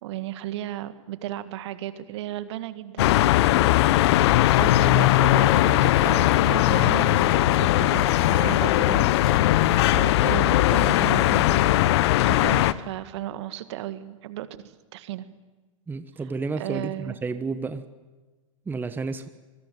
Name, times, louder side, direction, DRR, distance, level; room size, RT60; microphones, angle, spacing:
voice 1, 0.0-3.3 4.1-4.2 4.6-9.2 9.9-11.7 12.3-15.2 16.6-17.2, right 13 dB, 55° right, 12 dB, 1.8 m, -34 dB
sound 1, 3.0-12.7, left 15 dB, 50° left, 1.0 m, -19 dB
sound 2, 4.5-10.6, left 4 dB, 85° left, 1.5 m, -41 dB
voice 2, 15.9-17.8 18.7-19.3, right 4 dB, 10° right, 11 dB, 1.0 m, -31 dB
25.0 x 22.5 x 9.4 m, 1.2 s
figure-of-eight pair, 105°, 18 cm